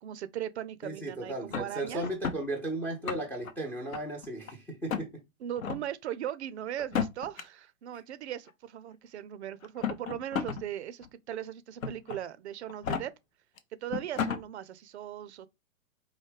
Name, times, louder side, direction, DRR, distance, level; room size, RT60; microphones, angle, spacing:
voice 1, 0.0-2.0 5.4-13.1 13.8-15.5, right 11 dB, 55° right, 0.5 m, -38 dB
voice 2, 0.8-5.1, right 1 dB, 5° left, 0.4 m, -35 dB
sound 1, 1.5-2.4 2.9-3.5 3.9-4.5 4.9-5.1 5.6-5.8 6.8-7.4 8.5-8.6 9.6-10.6 11.0-11.1 11.8-12.2 12.7-13.0 13.6-13.7 13.9-14.4, left 7 dB, 75° left, 0.8 m, -33 dB
4.8 x 2.6 x 3.1 m
figure-of-eight pair, 110°, 42 cm